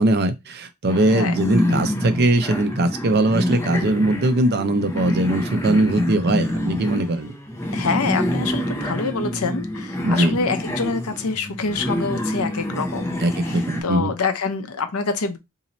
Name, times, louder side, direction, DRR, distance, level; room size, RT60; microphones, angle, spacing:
voice 1, 0.0-7.3 10.0-10.4 13.2-14.1, right 1 dB, 45° right, 0.6 m, -20 dB
sound 1, 0.9-13.8, left 1 dB, 10° left, 0.7 m, -27 dB
voice 2, 7.7-15.4, left 4 dB, 80° left, 0.7 m, -26 dB
3.0 x 2.8 x 4.0 m
head